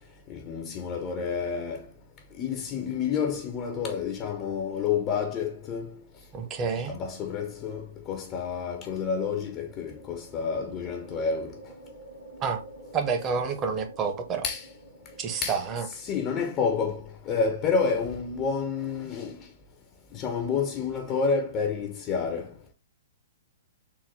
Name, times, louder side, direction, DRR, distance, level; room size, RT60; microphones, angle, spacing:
voice 1, 0.3-1.9 2.4-6.0 6.9-11.6 14.4-14.7 15.4-15.6 16.0-19.5 20.1-22.5, left 5 dB, 25° left, 0.5 m, -29 dB
voice 2, 6.3-7.0 12.4-12.6 12.9-14.5 15.2-15.9, right 5 dB, 25° right, 0.7 m, -29 dB
sound 1, 9.1-16.7, right 1 dB, 85° right, 1.7 m, -49 dB
3.8 x 2.1 x 4.0 m
hypercardioid pair, 135°, 0 cm